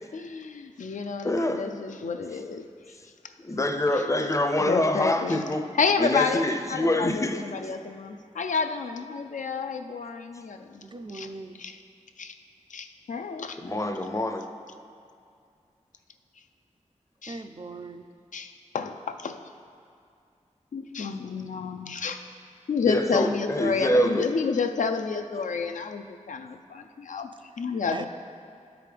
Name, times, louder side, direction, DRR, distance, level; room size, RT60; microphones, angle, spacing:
voice 1, 0.1-2.7 4.6-5.5 5.8-10.8 11.1-11.3 11.6-11.8 12.2-12.3 12.7-13.6 17.2-17.4 18.3-19.4 20.7-22.2 22.7-27.3 27.6-28.1, left 5 dB, 85° left, 7 dB, 0.4 m, -30 dB
voice 2, 1.2-1.7 3.4-5.6 6.0-7.4 13.6-14.4 22.8-24.3, left 1 dB, 25° left, 6 dB, 0.5 m, -25 dB
voice 3, 10.8-11.6 17.3-18.1 27.3-28.1, right 3 dB, 40° right, 7 dB, 0.4 m, -40 dB
12.0 x 5.0 x 3.3 m, 2.3 s
wide cardioid pair, 70°, 13 cm